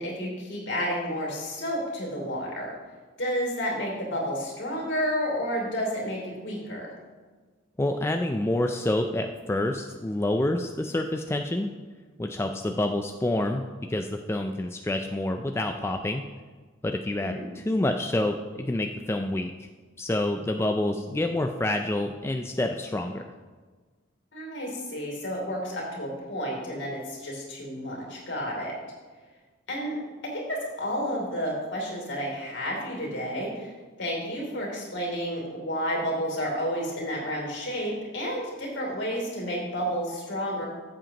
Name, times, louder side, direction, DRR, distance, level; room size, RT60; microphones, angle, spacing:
voice 1, 0.0-2.7 3.2-6.9 17.2-17.4 24.3-28.7 29.7-30.0 30.3-33.7 34.0-40.7, equal, 65° left, -1 dB, 3.0 m, -31 dB
voice 2, 7.8-11.7 12.2-13.6 13.9-16.2 16.8-19.5 20.0-23.2, left 1 dB, 15° left, 4 dB, 0.3 m, -27 dB
14.0 x 7.7 x 2.9 m, 1.4 s
head